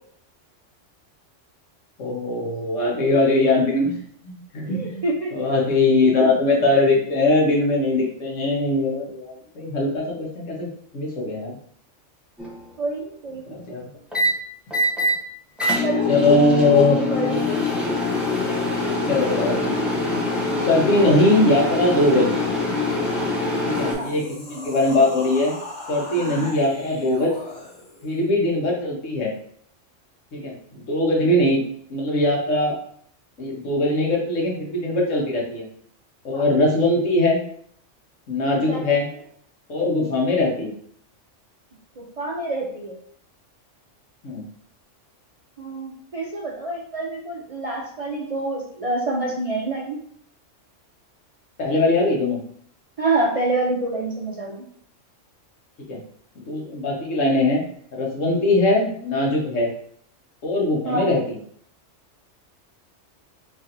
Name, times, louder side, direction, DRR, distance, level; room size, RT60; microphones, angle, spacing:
voice 1, 2.0-5.0 5.3-11.6 13.5-13.9 16.1-17.0 19.1-19.7 20.7-22.3 23.6-25.5 25.9-27.3 28.0-29.3 30.3-31.6 31.9-32.8 33.4-35.7 36.2-37.4 38.3-39.1 39.7-40.7 44.2-44.4 51.6-52.4 55.9-56.0 56.4-57.6 57.9-59.7 60.4-61.4, left 2 dB, 75° left, -1 dB, 1.3 m, -21 dB
voice 2, 4.7-5.3 12.8-13.4 15.8-16.5 16.8-17.4 23.9-24.1 26.2-26.5 36.3-36.4 38.7-38.8 42.0-43.0 45.6-50.0 53.0-54.6 60.9-61.1, right 2 dB, 55° right, -3 dB, 0.4 m, -27 dB
sound 1, 12.4-12.7 14.1-14.3 14.7-15.1 15.6-23.9, left 3 dB, ahead, 0.6 m, -23 dB
sound 2, 23.6-28.2, left 2 dB, 55° left, 1.2 m, -38 dB
4.2 x 3.1 x 2.5 m, 0.63 s
omnidirectional pair, 1.3 m